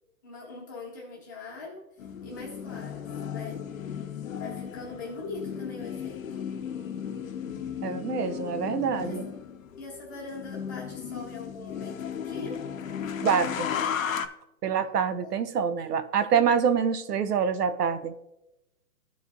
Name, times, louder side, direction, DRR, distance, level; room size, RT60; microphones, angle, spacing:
voice 1, 0.2-3.6 4.4-6.5 9.0-9.2 9.8-12.5 15.2-15.7 16.0-16.1, left 3 dB, 15° left, -3 dB, 0.7 m, -42 dB
sound 1, 2.0-14.3, left 8 dB, 60° left, 0.7 m, -35 dB
voice 2, 7.8-9.2 13.2-13.7 14.6-18.1, right 7 dB, 90° right, 11 dB, 0.9 m, -26 dB
14.0 x 4.9 x 2.7 m, 0.93 s
hypercardioid pair, 170°, 46 cm